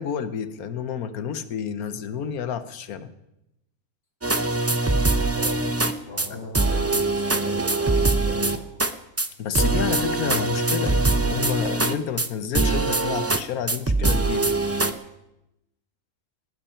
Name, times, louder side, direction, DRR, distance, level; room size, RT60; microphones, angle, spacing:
voice 1, 0.0-3.1 9.4-14.5, left 8 dB, 80° left, 12 dB, 1.4 m, -30 dB
sound 1, 4.2-5.9 6.2-6.3 6.5-8.9 9.2-9.3 9.5-12.3 12.5-13.4 13.7-14.9, right 2 dB, 20° right, 0.3 m, -22 dB
voice 2, 5.3-8.7, left 1 dB, 45° left, -1 dB, 3.1 m, -38 dB
19.5 x 10.5 x 5.7 m, 0.87 s
omnidirectional pair, 1.5 m